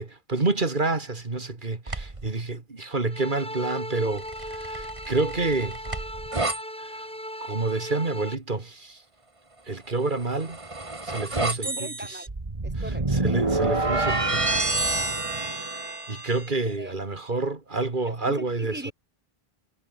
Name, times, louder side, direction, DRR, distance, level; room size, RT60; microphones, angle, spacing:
voice 1, 0.0-5.8 6.8-7.0 7.4-9.0 9.7-10.6 11.0-12.2 13.1-14.9 16.1-18.9, right 3 dB, 50° right, 2.3 m, -29 dB
sound 1, 1.9-2.3 4.2-6.6 10.1-16.5, right 2 dB, 30° right, 1.9 m, -28 dB
sound 2, 3.1-8.3, equal, 5° left, 4.0 m, -37 dB
voice 2, 11.4-12.3 12.6-13.1 16.6-16.9 18.1-18.9, right 1 dB, 10° right, 1.9 m, -39 dB
omnidirectional pair, 1.0 m